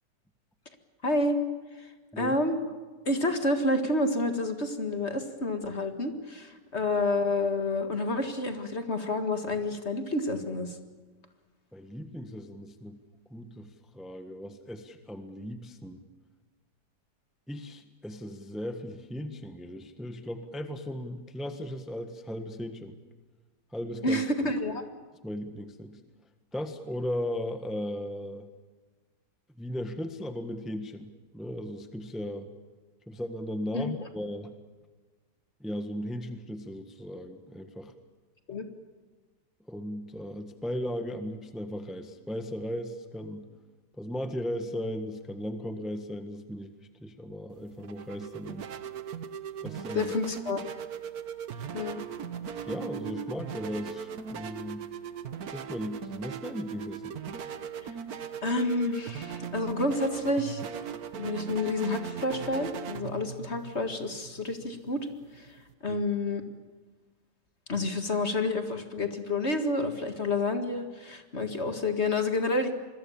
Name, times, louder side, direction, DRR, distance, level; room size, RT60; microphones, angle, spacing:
voice 1, 1.0-1.4 1.8-1.9 2.2-2.6 3.1-10.8 24.0-24.8 33.7-33.9 38.5-38.7 49.9-50.6 51.7-52.0 58.4-60.7 61.2-65.1 65.4-65.5 65.8-66.4 67.7-72.7, left 2 dB, 40° left, 7 dB, 2.0 m, -29 dB
voice 2, 11.7-13.0 13.3-16.0 17.5-23.0 23.7-24.5 25.2-26.0 26.5-28.5 29.6-32.5 33.1-34.5 35.6-37.9 39.7-43.4 44.0-46.7 47.0-48.7 49.6-50.1 52.6-54.9 55.5-57.2 65.9-66.0, equal, ahead, 7 dB, 1.3 m, -37 dB
sound 1, 47.5-65.7, right 8 dB, 60° right, 1.5 m, -39 dB
26.5 x 22.0 x 7.2 m, 1.3 s
omnidirectional pair, 1.9 m